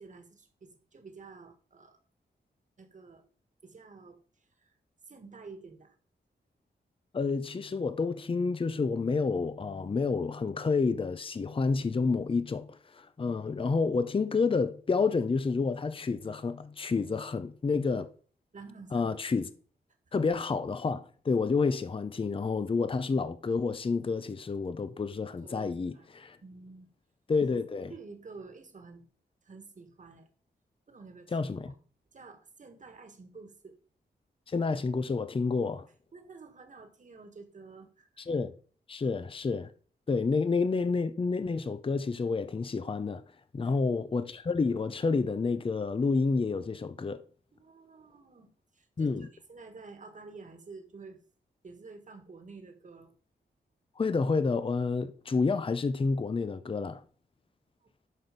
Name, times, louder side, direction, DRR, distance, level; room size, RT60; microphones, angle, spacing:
voice 1, 0.0-2.0 2.8-3.2 3.6-4.2 4.6-4.7 5.1-6.0 18.5-19.1 25.4-26.1 26.4-26.9 27.9-29.1 29.4-30.3 30.9-31.4 32.1-33.8 36.1-38.1 43.6-43.8 47.5-51.2 51.6-53.1 57.8-57.9, right 4 dB, 45° right, 1.8 m, -50 dB
voice 2, 7.1-18.1 18.9-19.5 20.1-26.4 27.3-27.9 31.3-31.7 34.5-35.9 38.2-38.5 38.9-39.7 40.1-43.2 43.5-47.2 49.0-49.3 54.0-57.0, left 4 dB, 30° left, 0.6 m, -29 dB
11.0 x 6.4 x 5.2 m
wide cardioid pair, 145°, 18 cm